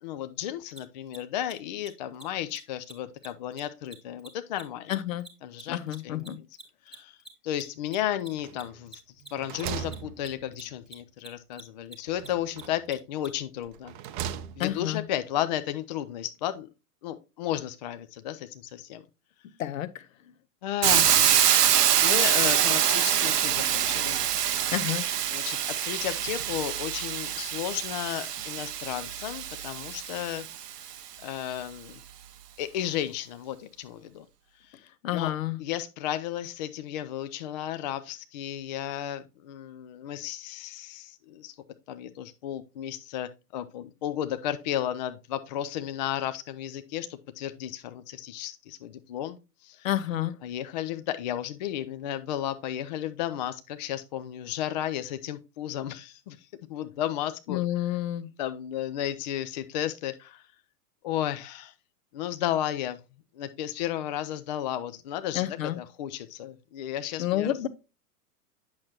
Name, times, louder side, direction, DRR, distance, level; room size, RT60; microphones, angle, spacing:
voice 1, 0.0-4.9 5.4-6.3 6.9-7.2 7.4-9.0 9.3-13.9 14.6-16.7 17.0-19.0 20.6-21.7 22.0-24.2 25.3-25.6 25.8-30.5 31.2-32.0 32.6-34.2 34.6-34.7 35.1-35.3 35.6-41.5 41.9-49.4 49.6-49.9 50.4-56.4 56.7-57.6 58.4-60.4 61.0-61.7 62.1-63.0 63.3-67.6, left 11 dB, 30° left, 0.4 m, -33 dB
Mechanisms, 0.7-0.8 1.1-1.2 1.4-1.5 1.8-2.2 2.5-2.6 2.8-2.9 3.2-5.9 6.2-13.3, right 2 dB, ahead, 1.1 m, -46 dB
voice 2, 4.9-5.2 5.7-6.4 14.6-15.0 19.6-19.9 24.7-25.1 35.0-35.6 49.8-50.3 57.5-58.3 65.3-65.8 67.2-67.7, left 13 dB, 55° left, 0.8 m, -29 dB
sound 1, 8.4-8.9 9.2-10.8 12.1-12.9 13.6-14.9, right 9 dB, 30° right, 0.6 m, -39 dB
Hiss, 20.8-30.7, right 10 dB, 80° right, 0.7 m, -25 dB
8.6 x 6.2 x 2.8 m
figure-of-eight pair, 110°, 47 cm